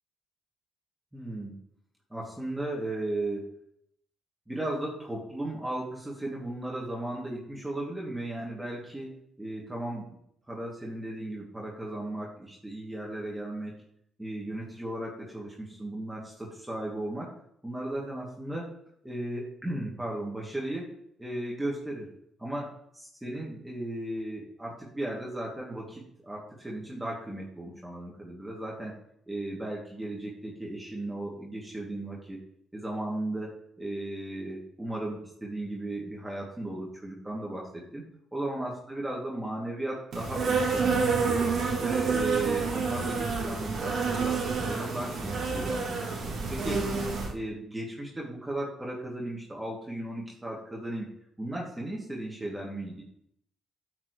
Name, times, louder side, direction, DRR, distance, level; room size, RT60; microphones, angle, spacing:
voice 1, 1.1-1.5 2.1-3.5 4.5-10.2 10.5-13.7 14.2-17.3 17.6-18.7 19.0-20.9 21.2-22.1 22.4-28.9 29.3-32.4 32.7-38.0 38.3-41.5 41.8-51.1 51.4-53.0, right 1 dB, 10° right, -4 dB, 2.8 m, -36 dB
Insect, 40.1-47.3, right 4 dB, 60° right, 2.4 m, -28 dB
10.5 x 6.1 x 3.3 m, 0.72 s
hypercardioid pair, 45°, 0 cm